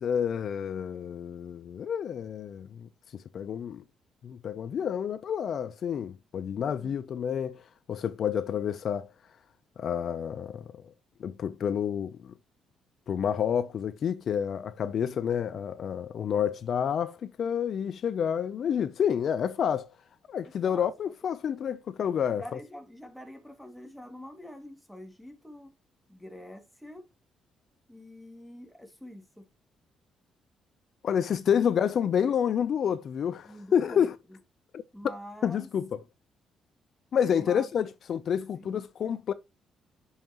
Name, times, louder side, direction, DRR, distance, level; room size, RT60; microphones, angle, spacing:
voice 1, 0.0-3.8 4.2-7.6 7.9-9.1 9.8-10.8 11.2-12.3 13.1-19.9 20.3-22.4 31.0-34.2 34.7-34.8 35.4-36.0 37.1-39.3, left 8 dB, 60° left, 0.5 m, -29 dB
voice 2, 22.4-25.7 26.1-27.0 27.9-29.5 33.4-34.4 34.9-35.7 37.3-37.7 38.6-38.8, left 1 dB, ahead, 2.2 m, -46 dB
10.5 x 5.6 x 3.0 m
cardioid pair, 90°, 0 cm